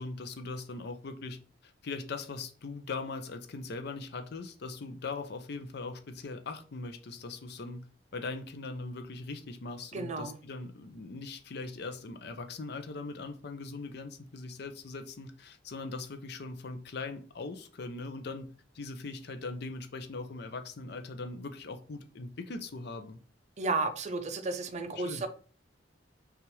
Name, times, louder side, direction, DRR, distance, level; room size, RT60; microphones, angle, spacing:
voice 1, 0.0-7.8 8.1-18.5 18.7-23.2 25.0-25.2, left 3 dB, 60° left, 7 dB, 0.6 m, -40 dB
voice 2, 9.9-10.4 23.6-25.3, right 3 dB, 40° right, 8 dB, 0.5 m, -33 dB
5.7 x 2.4 x 3.1 m, 0.40 s
head